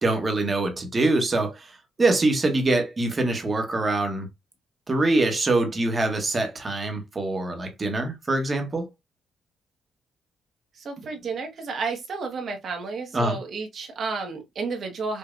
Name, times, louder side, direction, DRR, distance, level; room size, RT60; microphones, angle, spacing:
voice 1, 0.0-4.3 4.9-8.9 13.1-13.4, right 2 dB, 30° right, 1.3 m, -24 dB
voice 2, 10.8-15.2, right 4 dB, 55° right, 1.4 m, -31 dB
5.2 x 2.7 x 2.6 m
cardioid pair, 90°, 0 cm